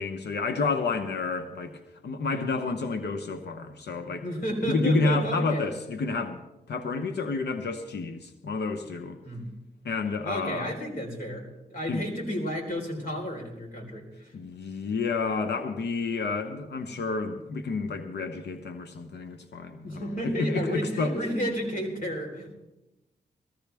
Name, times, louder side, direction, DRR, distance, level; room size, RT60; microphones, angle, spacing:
voice 1, 0.0-4.2 4.6-6.4 6.7-9.2 9.8-10.8 11.9-12.0 14.3-21.2, left 3 dB, 80° left, 6 dB, 1.0 m, -30 dB
voice 2, 4.0-5.6 9.2-9.5 10.2-14.3 14.8-14.9 19.8-22.5, equal, 55° left, 1 dB, 4.1 m, -32 dB
18.5 x 15.0 x 3.5 m, 0.97 s
cardioid pair, 70°, 17 cm